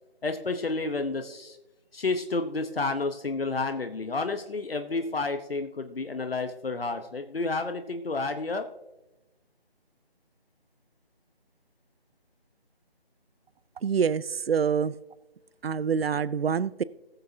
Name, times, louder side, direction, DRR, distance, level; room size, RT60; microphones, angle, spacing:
voice 1, 0.2-1.6 1.9-8.6, left 3 dB, 70° left, 7 dB, 1.0 m, -30 dB
voice 2, 13.8-14.9 15.6-16.8, right 6 dB, 70° right, 19 dB, 0.5 m, -26 dB
19.5 x 7.0 x 2.8 m, 0.98 s
figure-of-eight pair, 170°, 31 cm